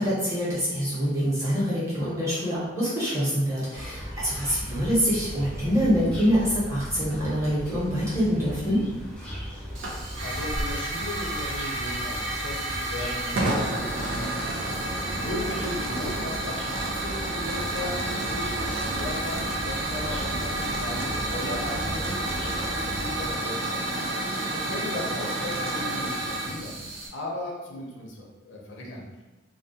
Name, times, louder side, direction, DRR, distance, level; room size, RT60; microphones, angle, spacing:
voice 1, 0.0-8.8, equal, 15° right, -9 dB, 0.8 m, -25 dB
sound 1, 3.7-23.3, equal, 5° left, 0.3 m, -37 dB
Hiss / Fire, 9.7-27.1, right 2 dB, 75° right, 0.4 m, -30 dB
voice 2, 10.2-23.9 24.5-29.0, left 1 dB, 70° left, -2 dB, 0.5 m, -37 dB
2.2 x 2.2 x 2.7 m, 1.1 s
head